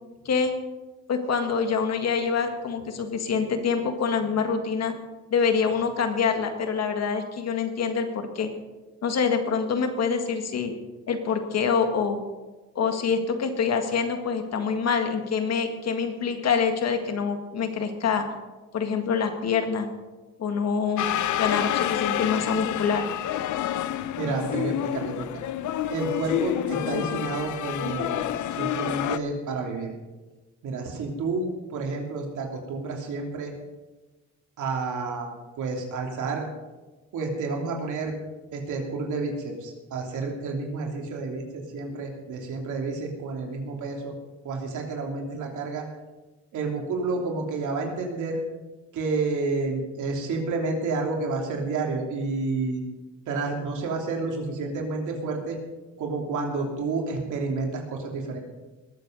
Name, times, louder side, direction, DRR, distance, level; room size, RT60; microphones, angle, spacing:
voice 1, 1.1-4.9 5.3-8.5 9.0-10.7 11.1-12.2 12.8-18.2 18.7-19.9 20.4-21.1 21.4-23.0, left 6 dB, 60° left, 6 dB, 1.8 m, -25 dB
sound 1, 21.0-29.2, left 12 dB, 75° left, 0.7 m, -28 dB
voice 2, 24.2-25.4 25.9-29.9 30.6-33.5 34.6-36.5 37.1-38.2 38.5-44.1 44.4-45.9 46.5-48.4 48.9-52.8 53.3-55.6 56.0-58.4, right 3 dB, 75° right, 1 dB, 3.1 m, -30 dB
20.5 x 7.7 x 5.3 m, 1.2 s
cardioid pair, 90°, 30 cm